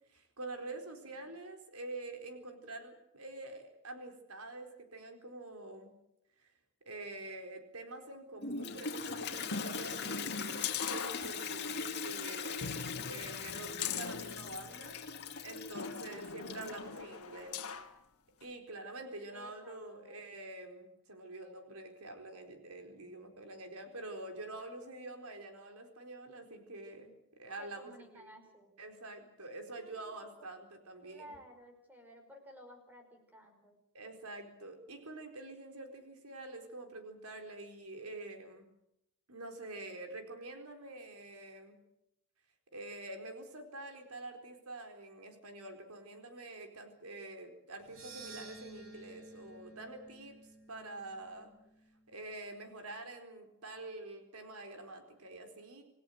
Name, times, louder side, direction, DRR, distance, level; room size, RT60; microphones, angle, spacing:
voice 1, 0.1-5.9 6.4-6.5 6.9-15.0 15.4-17.6 18.4-28.4 28.8-31.4 33.9-38.7 39.3-41.8 42.7-50.4 50.7-51.5 52.1-55.8, right 2 dB, 90° right, 5 dB, 4.2 m, -47 dB
Toilet flush, 8.4-17.0, left 5 dB, 50° left, 2.4 m, -41 dB
sound 1, 9.5-11.7 12.1-12.2 12.6-15.1 15.7-17.9 18.4-18.5, left 6 dB, 90° left, 1.6 m, -41 dB
voice 2, 15.8-16.3 19.3-20.3 27.6-28.7 29.7-30.5 31.0-33.8, equal, 10° right, 4 dB, 5.5 m, -56 dB
sound 2, 47.8-52.1, right 2 dB, 65° right, 4.4 m, -53 dB
27.5 x 17.0 x 7.9 m, 0.81 s
head